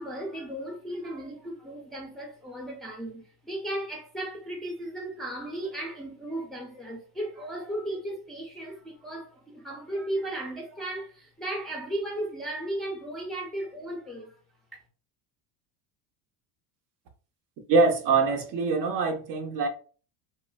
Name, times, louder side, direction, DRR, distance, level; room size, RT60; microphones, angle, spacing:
voice 1, 0.0-14.4, right 1 dB, ahead, 0.5 m, -35 dB
voice 2, 17.7-19.7, right 4 dB, 50° right, 0.7 m, -24 dB
3.1 x 2.4 x 2.2 m
cardioid pair, 145°, 41 cm